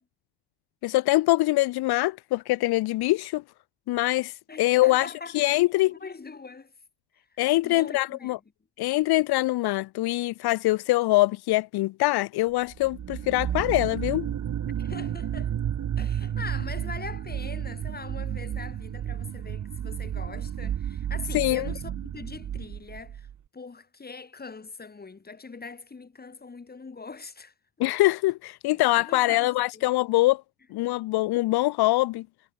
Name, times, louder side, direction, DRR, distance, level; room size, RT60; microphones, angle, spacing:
voice 1, 0.8-3.4 3.9-5.1 5.3-5.9 7.4-8.4 8.8-14.3 21.3-21.7 27.8-30.4 30.7-32.2, left 18 dB, 75° left, 0.7 m, -23 dB
voice 2, 4.5-5.5 5.9-6.7 7.6-8.4 14.8-15.5 16.0-23.3 23.5-27.5 28.7-29.8, left 4 dB, 25° left, 5.2 m, -42 dB
sound 1, 12.7-23.4, right 10 dB, 50° right, 2.1 m, -32 dB
cardioid pair, 115°, 38 cm